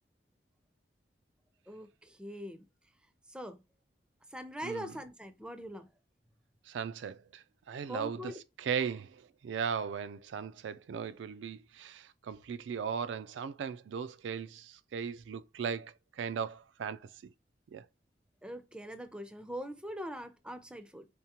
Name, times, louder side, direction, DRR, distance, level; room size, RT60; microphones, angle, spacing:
voice 1, 1.7-2.6 3.3-3.6 4.3-5.9 7.9-8.4 18.4-21.1, equal, 5° right, 0.4 m, -42 dB
voice 2, 4.6-5.0 6.7-17.3 17.7-17.9, right 7 dB, 80° right, 0.3 m, -38 dB
3.6 x 3.5 x 2.9 m
head